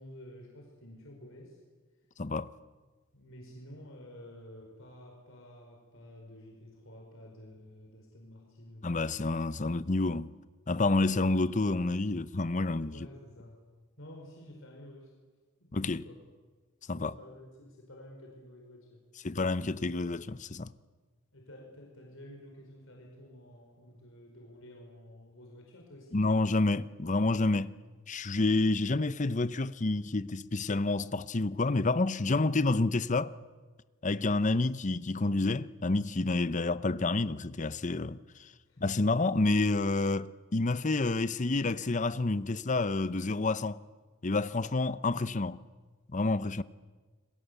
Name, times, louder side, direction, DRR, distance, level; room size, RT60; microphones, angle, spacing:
voice 1, 0.0-1.6 3.1-9.2 12.9-13.6 14.0-15.1 15.8-16.2 16.9-19.0 21.3-26.2 34.3-34.5 38.7-38.8, left 1 dB, 65° left, 5.0 m, -51 dB
voice 2, 2.2-2.5 8.8-10.3 10.7-12.9 15.7-16.0 16.9-17.1 19.2-20.7 26.1-27.7 28.1-33.3 34.0-38.5 38.8-43.8 44.2-45.6 46.1-46.6, left 2 dB, 35° left, 0.7 m, -29 dB
30.0 x 21.5 x 8.2 m
head